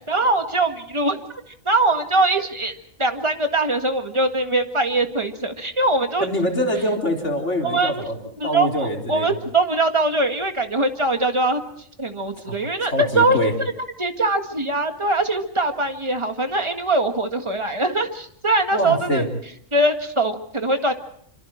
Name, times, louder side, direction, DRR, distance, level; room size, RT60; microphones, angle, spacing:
voice 1, 0.1-1.2 1.6-6.3 7.6-8.1 8.4-11.6 12.0-13.4 14.0-19.2 19.7-20.9, right 2 dB, 25° right, 6 dB, 1.8 m, -22 dB
voice 2, 6.2-8.2 8.4-9.3 12.5-12.6 12.9-13.5 18.7-19.2, equal, 60° left, 4 dB, 4.1 m, -24 dB
26.0 x 26.0 x 4.5 m, 0.64 s
omnidirectional pair, 1.3 m